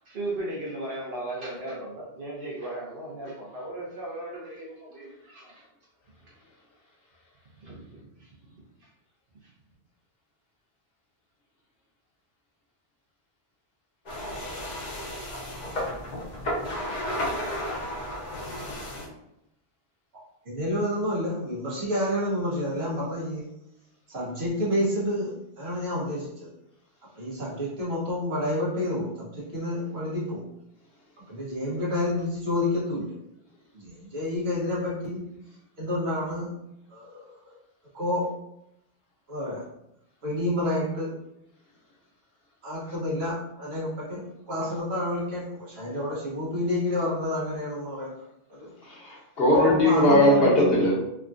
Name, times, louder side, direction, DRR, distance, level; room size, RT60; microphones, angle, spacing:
voice 1, 0.1-5.5 7.6-7.8 8.2-8.3 8.8-8.9, right 1 dB, 60° right, -5 dB, 1.1 m, -36 dB
sound 1, 14.1-19.1, equal, 50° left, 0.8 m, -33 dB
voice 2, 20.5-23.4 24.1-26.5 27.2-30.4 31.3-33.1 33.7-35.2 35.8-36.5 36.9-37.0 37.9-38.3 39.3-39.6 40.2-41.1 42.6-44.2 44.5-48.1 48.5-48.7 49.6-50.8, left 1 dB, 75° right, -6 dB, 1.4 m, -29 dB
voice 3, 48.9-50.9, left 1 dB, 70° left, -5 dB, 1.2 m, -20 dB
3.6 x 2.3 x 2.5 m, 0.85 s
omnidirectional pair, 1.1 m